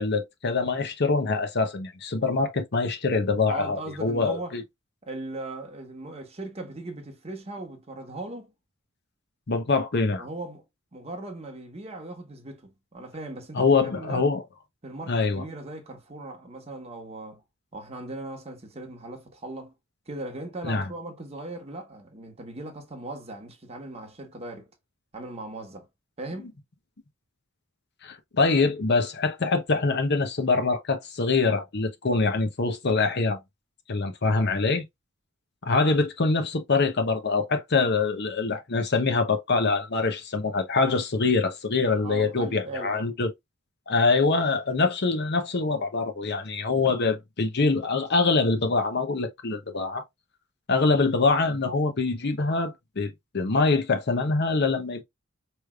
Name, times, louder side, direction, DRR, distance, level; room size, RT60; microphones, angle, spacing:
voice 1, 0.0-4.6 9.5-10.3 13.5-14.4 15.1-15.4 20.6-20.9 28.0-33.4 33.9-34.8 35.6-43.3 43.9-50.0 50.7-55.0, left 3 dB, 50° left, 0.8 m, -24 dB
voice 2, 3.5-4.6 5.0-8.5 10.2-10.6 10.9-14.3 14.8-17.4 17.7-19.7 20.1-24.7 25.1-25.9 26.2-26.5 42.0-43.1, right 2 dB, 30° right, 1.2 m, -38 dB
4.9 x 3.2 x 2.3 m
head